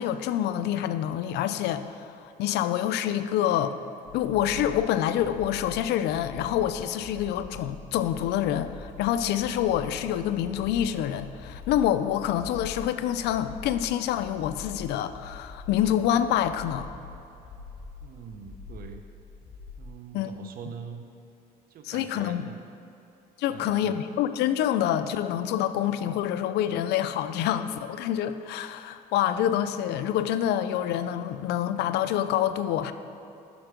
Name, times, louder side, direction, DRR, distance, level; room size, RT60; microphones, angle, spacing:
voice 1, 0.0-1.9 2.2-3.7 4.1-16.9 20.1-20.3 21.8-22.5 23.4-32.9, left 10 dB, 80° left, 11 dB, 0.5 m, -27 dB
sound 1, 4.1-19.9, left 4 dB, 45° left, 1.6 m, -44 dB
voice 2, 18.0-19.0 19.8-21.1 21.7-22.6 23.5-24.0, right 6 dB, 60° right, 6 dB, 0.8 m, -43 dB
12.0 x 4.5 x 5.1 m, 2.7 s
cardioid pair, 110°, 17 cm